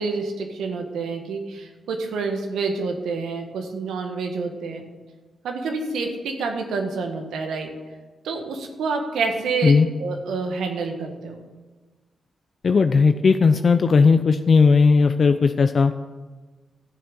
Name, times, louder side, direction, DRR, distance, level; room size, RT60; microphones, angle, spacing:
voice 1, 0.0-4.8 5.4-7.7 8.2-9.7 10.0-11.4, right 4 dB, 80° right, 4 dB, 1.5 m, -28 dB
voice 2, 12.6-15.9, left 4 dB, 55° left, 9 dB, 0.5 m, -16 dB
13.0 x 6.9 x 6.9 m, 1.3 s
supercardioid pair, 45°, 0 cm